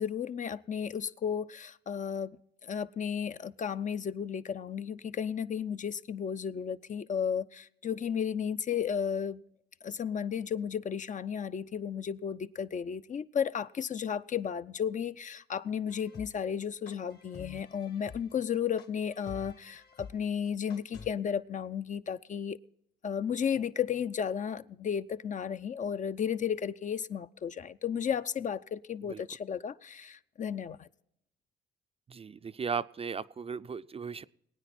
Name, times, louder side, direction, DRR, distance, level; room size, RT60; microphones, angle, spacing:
voice 1, 0.0-2.3 2.6-9.4 9.8-22.6 23.0-30.9, left 8 dB, 40° left, 0.5 m, -33 dB
sound 1, 15.9-21.1, left 5 dB, 55° left, 1.7 m, -48 dB
voice 2, 32.1-34.2, right 6 dB, 30° right, 0.4 m, -36 dB
21.5 x 9.1 x 4.2 m
cardioid pair, 90°, 20 cm